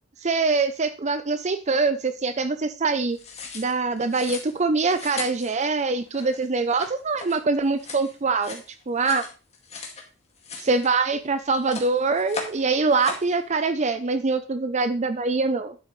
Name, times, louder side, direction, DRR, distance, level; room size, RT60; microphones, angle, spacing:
voice 1, 0.2-3.2 3.5-9.2 10.6-15.8, right 4 dB, 35° right, 10 dB, 0.6 m, -24 dB
sound 1, 3.1-10.1 10.4-11.3 11.5-12.6 12.9-13.3, left 4 dB, 35° left, 2.2 m, -38 dB
10.5 x 7.9 x 3.2 m, 0.33 s
head